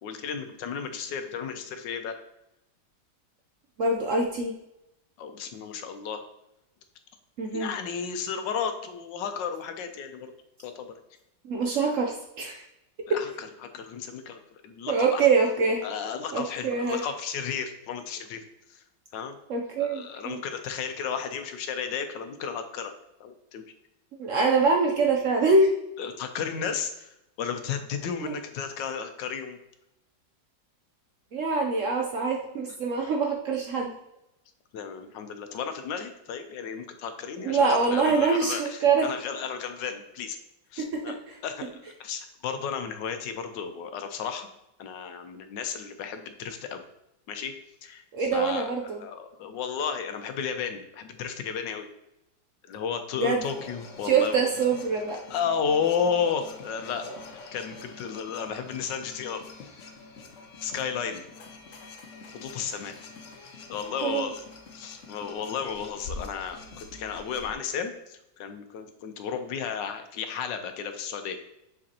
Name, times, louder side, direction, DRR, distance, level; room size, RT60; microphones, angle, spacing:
voice 1, 0.0-2.1 5.2-6.2 7.5-10.3 10.6-10.9 13.1-15.3 15.8-18.4 19.1-19.4 19.8-22.9 23.2-23.6 26.0-27.1 27.4-29.6 34.7-40.4 40.7-41.1 41.4-44.5 44.8-46.8 47.3-47.5 47.8-48.0 48.3-48.7 49.0-51.8 52.7-54.4 55.3-57.0 57.5-59.4 60.6-61.2 62.3-62.9 63.7-64.4 64.8-71.4, left 7 dB, 85° left, 7 dB, 1.4 m, -33 dB
voice 2, 3.8-4.5 7.4-7.7 11.4-12.6 13.1-13.2 14.9-15.8 16.3-17.0 19.5-20.4 24.2-25.7 28.2-28.3 31.3-33.9 37.4-39.1 40.8-41.4 48.1-49.0 53.2-53.5 54.0-55.2 64.0-64.3, right 4 dB, 65° right, 2 dB, 0.8 m, -24 dB
sound 1, 53.4-67.5, left 3 dB, 60° left, 0.9 m, -45 dB
7.5 x 5.1 x 2.8 m, 0.87 s
omnidirectional pair, 1.9 m